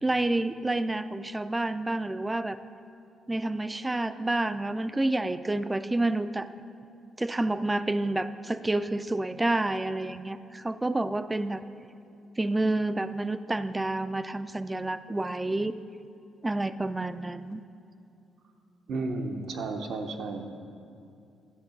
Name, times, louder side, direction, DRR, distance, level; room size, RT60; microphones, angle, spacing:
voice 1, 0.0-2.6 3.3-6.5 7.2-11.6 12.4-15.8 16.4-17.6, right 2 dB, 15° right, 12 dB, 0.3 m, -29 dB
voice 2, 18.9-20.6, right 3 dB, 70° right, 4 dB, 0.7 m, -33 dB
10.5 x 3.8 x 6.9 m, 2.5 s
cardioid pair, 90°, 0 cm